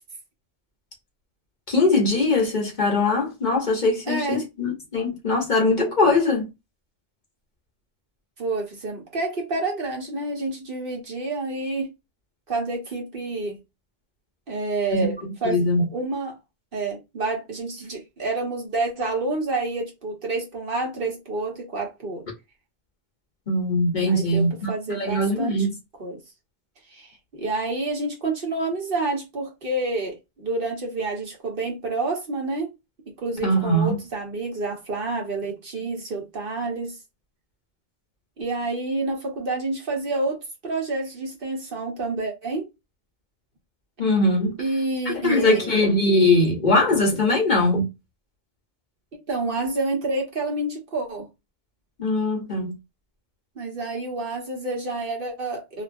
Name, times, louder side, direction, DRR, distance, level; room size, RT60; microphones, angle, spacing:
voice 1, 1.7-6.5 14.9-15.1 15.4-15.8 23.5-25.7 33.4-34.0 44.0-44.6 45.2-47.9 52.0-52.8, left 2 dB, 50° left, 1.0 m, -21 dB
voice 2, 4.1-4.5 8.4-11.9 12.5-13.6 14.5-15.6 15.9-16.4 16.7-22.2 24.0-25.7 26.0-26.2 26.9-32.7 33.2-37.0 38.4-42.7 44.6-45.7 49.3-51.3 53.6-55.8, right 2 dB, 60° right, 1.2 m, -28 dB
2.7 x 2.4 x 2.5 m
omnidirectional pair, 1.1 m